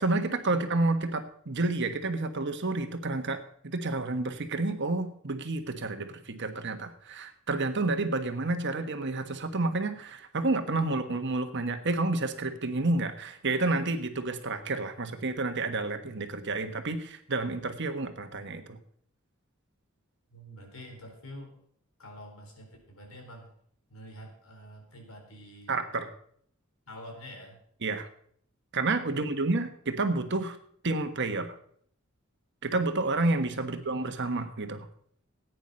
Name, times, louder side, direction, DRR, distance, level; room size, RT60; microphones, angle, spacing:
voice 1, 0.0-18.8 25.7-26.1 27.8-28.1 28.7-30.6 30.8-31.6 32.6-34.9, right 2 dB, 55° right, 7 dB, 1.3 m, -30 dB
voice 2, 20.3-21.6 22.0-23.5 23.9-25.7 26.9-27.6 29.0-29.5 33.6-33.8, equal, 85° left, 2 dB, 4.1 m, -47 dB
15.5 x 9.3 x 5.3 m, 0.62 s
head